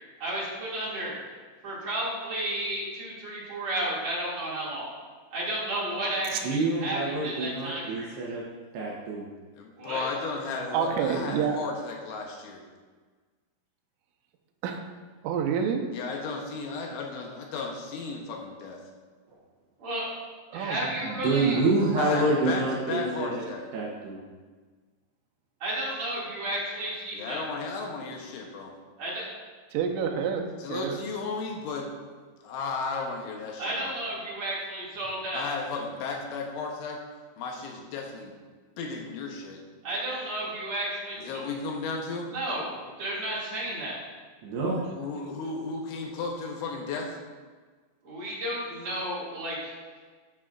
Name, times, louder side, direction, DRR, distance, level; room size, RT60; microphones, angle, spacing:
voice 1, 0.2-1.1 1.6-4.9 5.3-8.1 9.8-10.1 19.8-20.1 20.5-21.6 25.6-27.4 29.0-29.2 33.6-35.4 39.8-41.5 42.3-44.0 48.0-49.7, right 1 dB, 45° right, -7 dB, 2.8 m, -32 dB
voice 2, 6.4-8.4 8.7-9.3 21.0-23.4 23.7-24.2 44.4-44.8, right 2 dB, 70° right, -3 dB, 2.6 m, -27 dB
voice 3, 9.6-12.6 15.9-18.8 21.9-22.6 22.9-23.6 27.1-28.7 30.6-31.9 32.4-33.9 35.3-37.0 37.4-38.4 38.8-39.6 41.2-42.3 45.0-47.2, left 4 dB, 75° left, 0 dB, 3.1 m, -34 dB
voice 4, 10.7-11.7 14.6-14.8 15.2-15.9 20.5-21.7 22.4-22.5 29.7-31.0 43.7-43.8 44.8-45.0, right 7 dB, 90° right, 3 dB, 3.3 m, -29 dB
12.0 x 9.3 x 2.5 m, 1.4 s
omnidirectional pair, 5.7 m